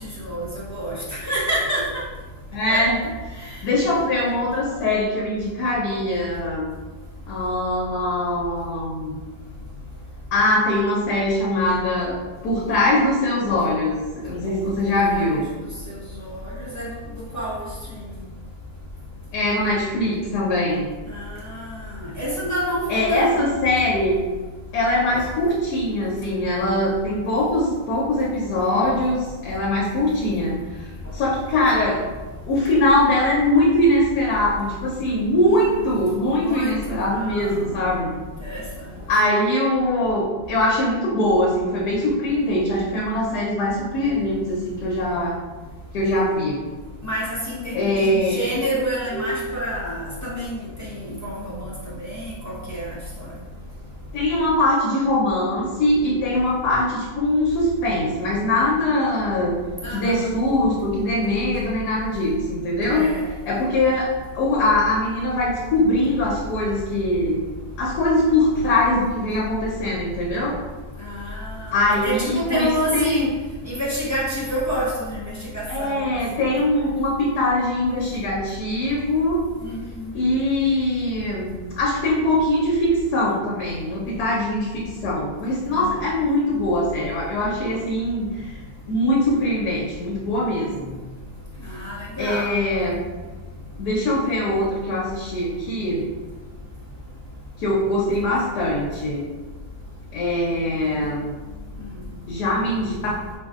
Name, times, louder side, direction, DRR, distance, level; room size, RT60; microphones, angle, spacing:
voice 1, 0.0-1.8 2.7-2.8 15.1-15.3 15.9-17.0 17.3-17.7 21.1-23.4 25.1-25.2 35.4-35.7 36.4-37.7 38.4-38.6 47.0-51.7 52.0-53.3 59.8-60.3 62.9-63.3 71.0-73.3 73.6-76.1 79.6-80.1 85.7-86.0 91.7-92.5, equal, 20° left, -9 dB, 0.4 m, -28 dB
voice 2, 2.5-3.0 3.3-6.7 7.3-9.2 10.3-12.2 12.4-15.5 19.3-20.9 22.9-24.1 24.7-30.9 31.1-32.0 32.5-38.1 39.1-45.4 45.9-46.6 47.7-48.4 54.1-59.5 59.9-63.1 63.5-64.1 64.3-67.4 67.8-70.6 71.7-73.3 75.7-79.4 80.1-88.6 88.9-91.0 92.2-93.0 93.8-96.1 97.6-99.3 100.1-101.3 102.3-103.3, left 1 dB, 80° left, -4 dB, 1.2 m, -22 dB
5.1 x 2.6 x 2.4 m, 1.3 s
omnidirectional pair, 1.7 m